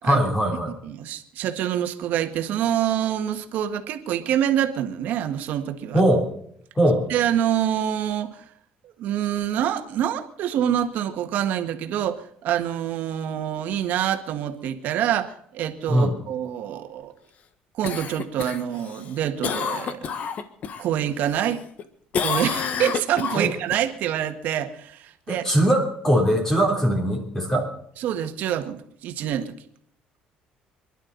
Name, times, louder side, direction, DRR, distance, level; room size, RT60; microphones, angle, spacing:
voice 1, 0.0-0.7 5.9-6.3 6.7-7.0 15.9-16.1 23.3-23.5 25.3-27.7, right 1 dB, 15° left, 2 dB, 3.5 m, -21 dB
voice 2, 0.8-6.0 7.1-8.4 8.8-17.1 17.8-20.2 20.8-21.6 22.2-25.4 28.0-29.5, right 10 dB, 70° right, 7 dB, 1.8 m, -26 dB
Cough, 17.8-20.8 21.2-21.8 22.1-23.8 28.2-28.3, left 7 dB, 55° left, 1.5 m, -29 dB
26.5 x 11.5 x 4.1 m, 0.66 s
cardioid pair, 115°, 3 cm